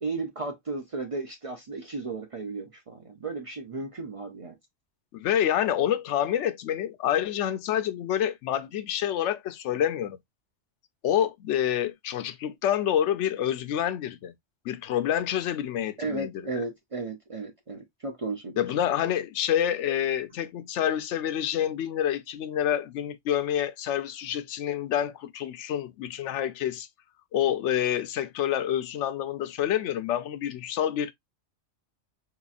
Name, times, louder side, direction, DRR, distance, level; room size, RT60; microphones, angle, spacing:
voice 1, 0.0-4.5 16.0-18.6, right 3 dB, 40° right, 0.5 m, -34 dB
voice 2, 5.1-10.2 11.0-14.3 14.7-16.3 18.6-26.9 27.3-31.1, left 10 dB, 85° left, 0.9 m, -27 dB
4.4 x 2.9 x 2.3 m
omnidirectional pair, 1.2 m